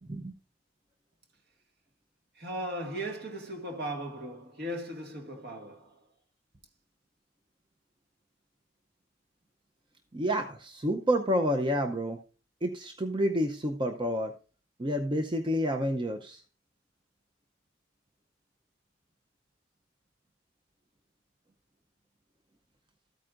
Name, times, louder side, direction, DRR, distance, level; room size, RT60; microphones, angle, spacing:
voice 1, 2.3-6.1, right 1 dB, 55° right, 2.0 m, -37 dB
voice 2, 10.1-12.2 12.6-14.3 14.8-16.4, equal, 25° right, 0.6 m, -29 dB
13.0 x 9.0 x 2.5 m
head